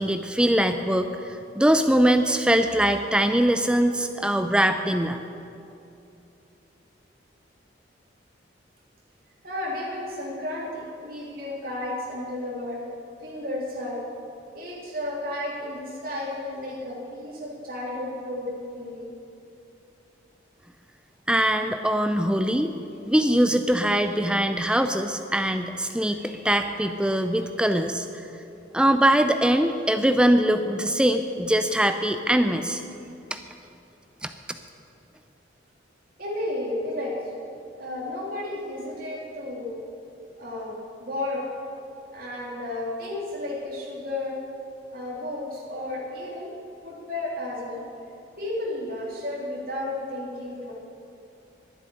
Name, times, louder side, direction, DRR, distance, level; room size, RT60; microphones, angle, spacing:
voice 1, 0.0-5.2 21.3-22.7 23.1-28.1 28.7-32.8 33.3-33.4 34.2-34.3, right 1 dB, 5° right, 8 dB, 0.4 m, -22 dB
voice 2, 9.4-12.8 13.2-14.0 14.5-19.1 36.2-37.2 37.8-39.8 40.4-41.5 42.1-44.4 44.9-46.5 46.8-47.8 48.4-50.7, left 1 dB, 50° right, -5 dB, 3.4 m, -33 dB
11.5 x 10.0 x 10.0 m, 2.7 s
head